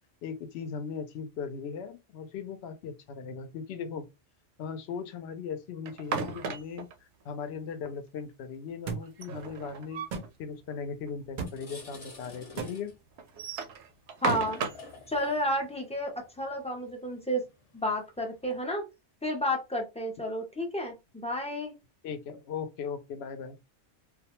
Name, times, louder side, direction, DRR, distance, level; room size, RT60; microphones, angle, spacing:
voice 1, 0.2-4.1 4.6-6.9 7.2-10.1 10.4-12.9 22.0-23.6, left 6 dB, 70° left, 0.8 m, -38 dB
sound 1, 5.9-6.9 9.0-10.3 10.7-10.8 11.1-11.2 11.9-12.0 13.2-14.9, right 5 dB, 80° right, 0.9 m, -34 dB
sound 2, 8.9-9.0 10.1-10.3 11.4-11.6 12.6-12.7, right 4 dB, 55° right, 0.6 m, -34 dB
sound 3, 11.3-18.6, left 3 dB, 35° left, 0.7 m, -50 dB
voice 2, 14.2-14.6 15.1-17.4 17.7-18.8 19.2-21.7, equal, 10° left, 0.3 m, -31 dB
2.3 x 2.2 x 2.9 m
omnidirectional pair, 1.2 m